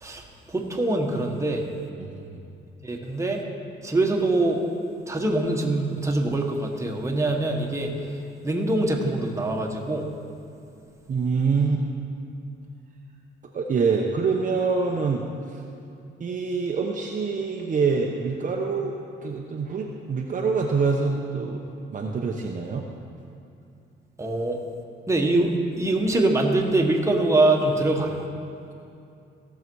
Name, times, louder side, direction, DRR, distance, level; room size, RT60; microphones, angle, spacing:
voice 1, 0.0-1.7 2.8-3.4 3.8-4.6 5.1-7.9 8.4-10.1 24.2-24.6 25.1-28.2, right 2 dB, 15° right, 0 dB, 1.6 m, -24 dB
voice 2, 2.0-2.4 11.1-11.8 13.5-15.2 16.2-21.6 21.9-22.9, right 5 dB, 40° right, 0 dB, 0.9 m, -25 dB
16.5 x 6.8 x 4.7 m, 2.6 s
cardioid pair, 90°, 20 cm